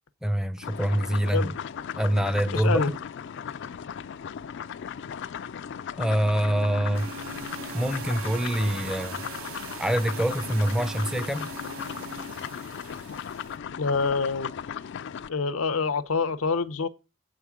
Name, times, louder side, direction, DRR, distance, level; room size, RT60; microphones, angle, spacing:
voice 1, 0.2-1.5 2.0-2.9 6.0-7.1 7.7-9.2 9.8-11.5, right 1 dB, 5° right, 0.5 m, -25 dB
sound 1, 0.6-15.3, left 8 dB, 55° left, 0.4 m, -37 dB
voice 2, 2.5-2.9 13.8-14.5 15.3-16.9, left 4 dB, 80° left, 0.7 m, -26 dB
Wind instrument woodwind instrument, 6.4-12.4, right 2 dB, 55° right, 0.5 m, -44 dB
sound 2, 6.9-13.6, right 6 dB, 75° right, 1.1 m, -42 dB
7.8 x 4.9 x 7.1 m
head